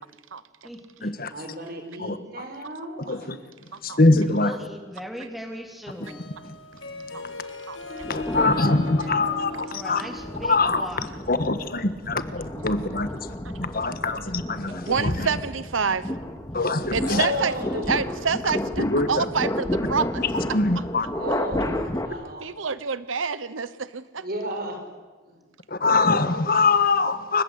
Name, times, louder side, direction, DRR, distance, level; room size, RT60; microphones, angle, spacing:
voice 1, 0.6-1.3 4.2-6.3 8.9-11.1, equal, ahead, 3 dB, 3.5 m, -39 dB
voice 2, 1.3-3.3 12.4-13.1 17.0-18.1 21.1-22.4 24.2-24.8 25.3-25.4, equal, 50° right, 5 dB, 5.6 m, -34 dB
voice 3, 3.8-4.5 8.1-10.0 10.4-10.9 11.3-13.1 13.6-15.3 16.5-17.3 18.8-19.2 20.5-21.1 25.7-27.4, left 3 dB, 50° left, 11 dB, 1.5 m, -23 dB
Harp, 5.9-11.4, left 1 dB, 80° left, 7.5 m, -37 dB
sound 1, 8.0-9.4 10.0-22.1, left 1 dB, 15° left, 2.1 m, -32 dB
voice 4, 14.8-16.1 16.9-17.5 17.9-20.3 22.4-24.3, right 5 dB, 90° right, 15 dB, 1.0 m, -27 dB
29.0 x 24.5 x 8.3 m, 1.4 s
head